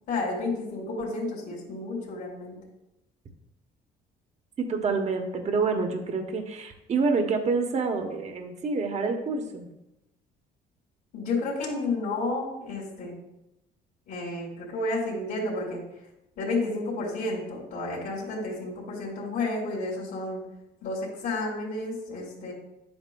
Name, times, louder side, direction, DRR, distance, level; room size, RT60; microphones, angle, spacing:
voice 1, 0.1-2.6 11.1-13.2 14.1-15.8 16.4-20.4 20.8-22.5, left 2 dB, 70° left, -5 dB, 2.6 m, -31 dB
voice 2, 4.6-9.7, right 4 dB, 40° right, 4 dB, 1.1 m, -27 dB
10.0 x 7.9 x 2.3 m, 0.90 s
cardioid pair, 110°, 17 cm